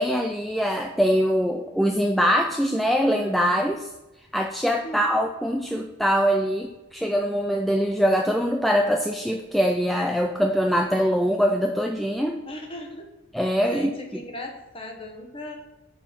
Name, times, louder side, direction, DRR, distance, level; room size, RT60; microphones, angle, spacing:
voice 1, 0.0-3.9 4.3-12.4 13.3-13.9, equal, ahead, 2 dB, 0.3 m, -23 dB
voice 2, 4.8-5.2 12.5-13.1 13.6-15.6, left 1 dB, 25° left, 2 dB, 1.2 m, -37 dB
6.1 x 5.8 x 5.8 m, 1.0 s
head